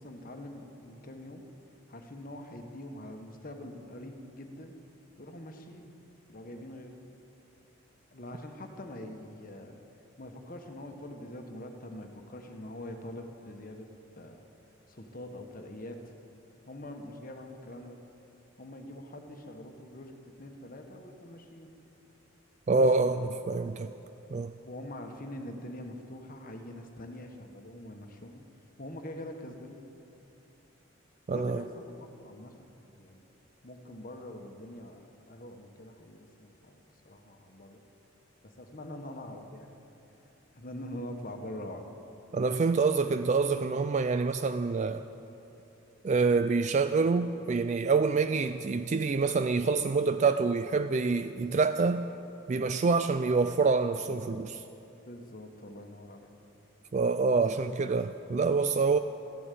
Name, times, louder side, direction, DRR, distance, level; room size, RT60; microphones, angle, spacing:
voice 1, 0.0-1.4 1.9-4.8 5.2-5.9 6.3-6.9 8.1-9.8 10.2-13.9 14.1-14.4 14.9-16.1 16.6-18.0 18.6-21.7 22.7-23.3 24.6-28.4 28.8-29.8 31.3-32.7 33.0-33.2 33.6-37.8 38.4-39.7 40.5-41.8 55.0-56.3, left 1 dB, 40° left, 4 dB, 1.3 m, -44 dB
voice 2, 22.7-23.2 23.5-23.9 24.3-24.5 31.3-31.6 42.3-45.0 46.0-52.1 52.5-54.6 56.9-59.0, right 4 dB, 35° right, 10 dB, 0.3 m, -26 dB
14.5 x 11.5 x 8.4 m, 2.9 s
head